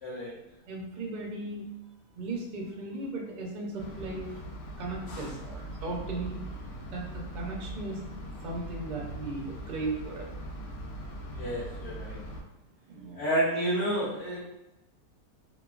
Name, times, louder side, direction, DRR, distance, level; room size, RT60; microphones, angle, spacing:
voice 1, 0.0-0.4 11.3-12.2 13.1-14.4, right 1 dB, 60° left, -9 dB, 1.0 m, -30 dB
voice 2, 0.7-1.6 2.2-4.3 4.8-6.4 6.9-8.0 8.4-10.3 12.9-13.2, right 2 dB, 75° right, 0 dB, 0.4 m, -36 dB
sound 1, 3.8-12.4, right 1 dB, 85° left, 1.1 m, -41 dB
2.9 x 2.2 x 2.3 m, 0.95 s
omnidirectional pair, 1.6 m